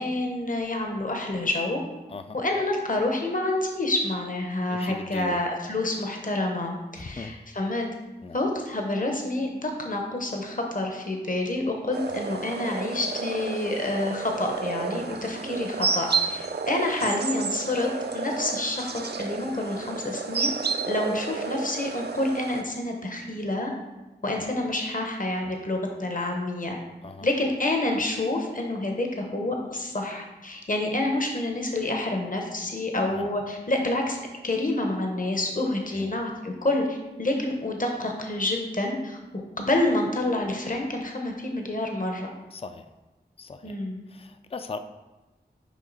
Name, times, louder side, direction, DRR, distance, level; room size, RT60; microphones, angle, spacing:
voice 1, 0.0-1.8 2.3-7.9 8.3-20.5 20.9-23.7 24.2-26.8 27.2-39.2 39.6-42.3 43.6-44.0, left 2 dB, 50° left, 2 dB, 1.0 m, -28 dB
voice 2, 4.7-5.4 6.9-7.3 8.2-8.4 17.0-17.1 24.4-24.5 25.4-25.6 27.0-27.3 33.1-33.3 35.9-36.1 42.5-42.8 43.4-43.8 44.1-44.8, left 4 dB, 35° left, 9 dB, 0.4 m, -39 dB
sound 1, 11.9-22.6, right 4 dB, 70° right, 0.5 m, -31 dB
6.3 x 5.0 x 4.0 m, 1.1 s
wide cardioid pair, 50°, 17 cm